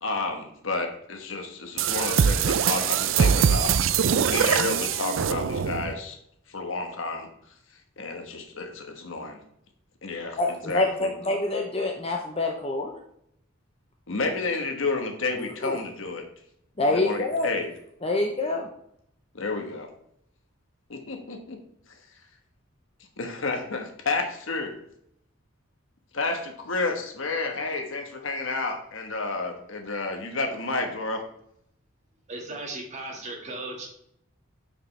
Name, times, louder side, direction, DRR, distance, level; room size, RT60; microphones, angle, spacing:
voice 1, 0.0-3.7 4.3-6.2 6.5-7.3 8.0-9.4 10.0-10.4 10.6-11.1 14.1-16.2 16.9-17.7 19.3-19.9 20.9-21.6 23.2-24.7 26.1-31.2, left 3 dB, 70° left, 4 dB, 1.2 m, -30 dB
sound 1, 1.8-5.9, right 7 dB, 70° right, 0.4 m, -23 dB
voice 2, 10.4-13.0 15.4-15.8 16.8-17.5 18.0-18.7, left 2 dB, 30° left, 2 dB, 0.6 m, -26 dB
voice 3, 32.3-33.9, right 2 dB, 35° right, 1 dB, 1.7 m, -36 dB
9.4 x 5.2 x 3.3 m, 0.72 s
head